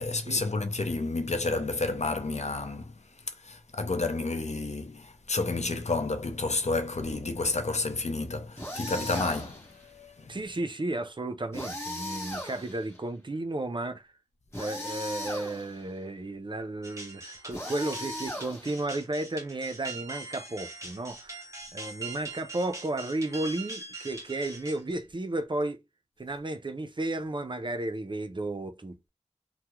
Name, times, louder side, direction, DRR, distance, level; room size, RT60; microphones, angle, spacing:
voice 1, 0.0-2.9 3.4-10.4, left 3 dB, 65° left, 0.6 m, -30 dB
sound 1, 8.6-9.7 11.5-13.0 14.5-15.8 17.5-18.9, left 1 dB, 20° left, 1.3 m, -37 dB
voice 2, 10.3-14.1 14.5-25.8 26.2-29.1, right 2 dB, 40° right, 0.5 m, -33 dB
sound 2, 16.8-25.1, right 2 dB, 25° right, 1.0 m, -42 dB
3.4 x 2.1 x 3.0 m
wide cardioid pair, 60°, 12 cm